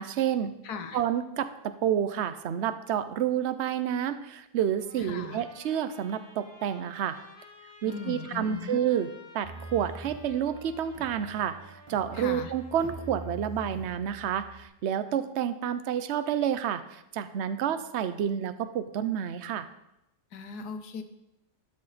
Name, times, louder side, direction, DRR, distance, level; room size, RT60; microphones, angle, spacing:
voice 1, 0.0-0.6 0.9-7.2 7.8-9.1 9.3-11.6 11.9-19.7, right 9 dB, 55° right, 11 dB, 0.9 m, -29 dB
voice 2, 0.6-1.0 5.0-5.4 7.8-8.8 12.1-12.5 20.3-21.0, left 5 dB, 90° left, 9 dB, 1.5 m, -38 dB
Trumpet, 4.8-13.4, left 2 dB, 60° left, 2.6 m, -53 dB
sound 1, 9.4-14.6, right 2 dB, 20° right, 1.1 m, -44 dB
12.5 x 9.8 x 4.1 m, 0.87 s
omnidirectional pair, 1.6 m